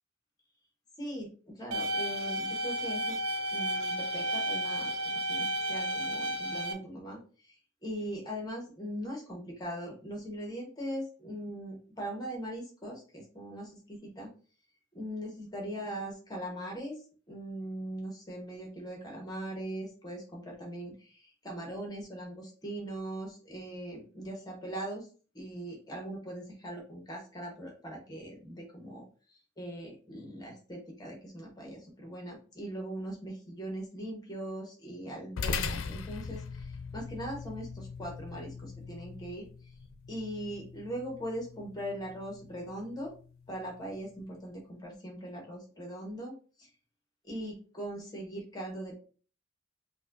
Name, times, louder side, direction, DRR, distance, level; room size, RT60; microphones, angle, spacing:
voice 1, 1.0-3.2 3.5-4.9 5.3-14.3 14.9-17.0 17.3-25.1 25.3-29.0 29.3-39.5 40.1-43.1 43.5-46.7 47.2-48.9, right 1 dB, 20° left, 0 dB, 1.1 m, -40 dB
sound 1, 1.7-6.7, right 1 dB, 85° right, 0.6 m, -32 dB
sound 2, 35.4-44.0, left 5 dB, 85° left, 0.5 m, -41 dB
5.1 x 2.3 x 2.5 m, 0.38 s
head